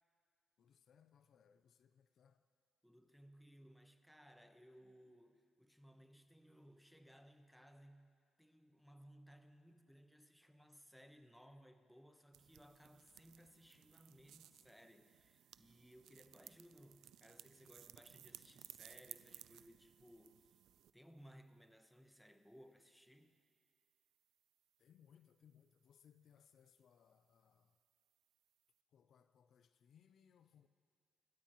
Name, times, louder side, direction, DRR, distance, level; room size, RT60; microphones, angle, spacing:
voice 1, 0.6-2.5 24.8-27.8 28.9-30.7, left 8 dB, 65° left, 11 dB, 0.5 m, -69 dB
voice 2, 2.8-8.1 8.4-20.6 20.9-23.4, equal, ahead, 7 dB, 0.9 m, -62 dB
sound 1, 12.3-20.9, right 12 dB, 85° right, 0.4 m, -60 dB
26.0 x 13.0 x 3.0 m, 2.2 s
cardioid pair, 95°, 0 cm